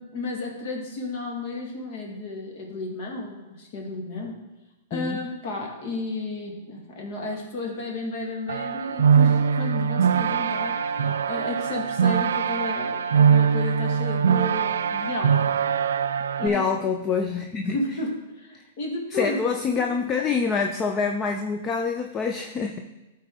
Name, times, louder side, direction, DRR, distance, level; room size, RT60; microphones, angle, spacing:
voice 1, 0.0-4.4 4.9-15.5 16.4-16.9 17.6-19.5, left 2 dB, 50° left, 0 dB, 2.1 m, -33 dB
sound 1, 8.5-16.5, right 7 dB, 85° right, 0.3 m, -22 dB
voice 2, 16.4-17.8 19.1-22.8, left 5 dB, 25° left, 4 dB, 0.5 m, -26 dB
12.5 x 4.2 x 3.8 m, 1.1 s
hypercardioid pair, 135°, 0 cm